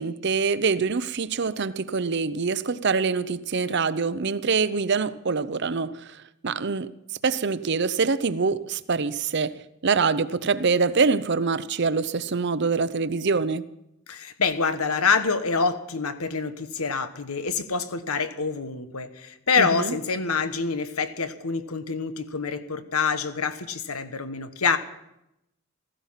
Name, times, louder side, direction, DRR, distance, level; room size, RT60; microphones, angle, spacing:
voice 1, 0.0-6.2 6.4-6.9 7.2-13.6 19.6-19.9, right 4 dB, 50° right, 0.7 m, -25 dB
voice 2, 14.1-24.8, left 5 dB, 85° left, 1.3 m, -26 dB
15.5 x 15.0 x 5.8 m
head